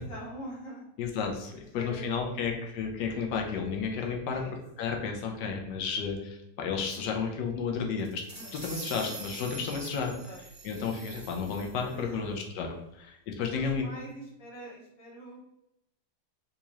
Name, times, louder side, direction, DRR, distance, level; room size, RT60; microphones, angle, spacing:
voice 1, 0.0-0.8 1.6-2.4 4.0-4.5 8.3-8.5 10.2-10.4 11.9-12.2 13.5-15.4, right 1 dB, 55° left, -4 dB, 1.4 m, -44 dB
voice 2, 1.0-4.4 4.8-8.2 8.6-10.1 10.6-13.9, left 5 dB, 80° left, 2 dB, 1.2 m, -32 dB
sound 1, 8.0-12.0, right 3 dB, 25° right, 0.3 m, -45 dB
3.6 x 2.8 x 2.9 m, 0.83 s
omnidirectional pair, 1.9 m